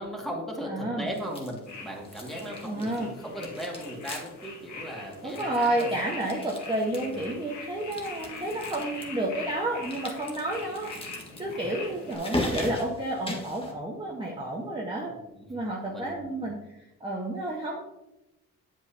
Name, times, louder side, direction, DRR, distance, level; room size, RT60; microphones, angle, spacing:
voice 1, 0.0-5.9 6.9-7.3 11.1-11.2 11.6-11.9 15.1-15.6 15.9-16.5, equal, ahead, -2 dB, 2.3 m, -38 dB
voice 2, 0.7-1.1 2.6-3.1 5.2-10.9 11.4-15.1 15.5-16.6 17.0-17.8, right 1 dB, 15° right, -3 dB, 1.3 m, -30 dB
sound 1, 1.1-1.8 2.0-3.1 3.4-4.5 4.7-4.8 5.1-7.3 7.8-9.0 9.8-13.7, left 1 dB, 20° left, 1.6 m, -38 dB
sound 2, 1.7-12.2, left 3 dB, 70° left, 1.8 m, -43 dB
8.0 x 7.6 x 2.9 m, 0.94 s
cardioid pair, 90°, 30 cm